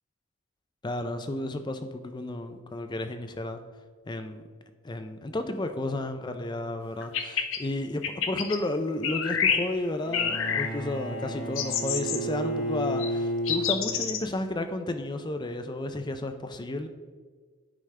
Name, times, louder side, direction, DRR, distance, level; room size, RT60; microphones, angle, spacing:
voice 1, 0.8-3.6 4.1-4.4 4.8-16.9, left 1 dB, 20° left, 7 dB, 0.4 m, -32 dB
sound 1, 7.0-7.6 8.0-8.6 9.0-9.6 10.1-10.7 11.6-12.2 13.0-13.1 13.5-14.2, left 7 dB, 65° left, 0.7 m, -28 dB
Bowed string instrument, 10.0-14.1, right 1 dB, 85° left, 2.1 m, -32 dB
9.8 x 4.9 x 3.3 m, 1.5 s
head